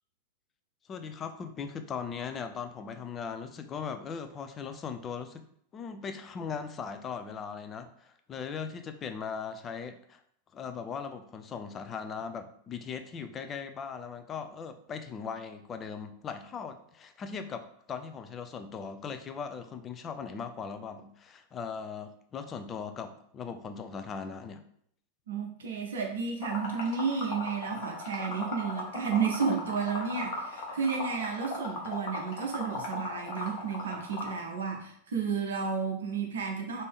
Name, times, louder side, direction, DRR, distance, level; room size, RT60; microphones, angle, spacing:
voice 1, 0.9-5.4 5.7-10.2 10.5-24.6, left 6 dB, 25° left, 8 dB, 0.4 m, -39 dB
voice 2, 25.3-36.8, right 5 dB, 65° right, 2 dB, 0.6 m, -32 dB
Liquid, 26.4-34.4, left 2 dB, 45° left, 0.9 m, -37 dB
3.4 x 2.6 x 3.5 m, 0.68 s
figure-of-eight pair, 90°, 0 cm